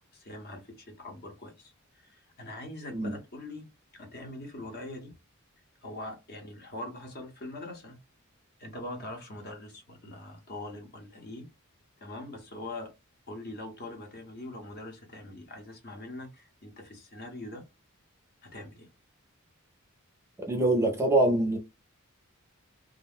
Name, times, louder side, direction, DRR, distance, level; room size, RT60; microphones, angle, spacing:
voice 1, 0.0-5.1 5.8-8.0 8.6-11.5 12.0-12.9 13.3-17.6 18.4-18.9, left 2 dB, 45° left, 0.9 m, -42 dB
voice 2, 20.5-21.6, right 1 dB, 10° right, 0.5 m, -24 dB
2.4 x 2.1 x 3.4 m
head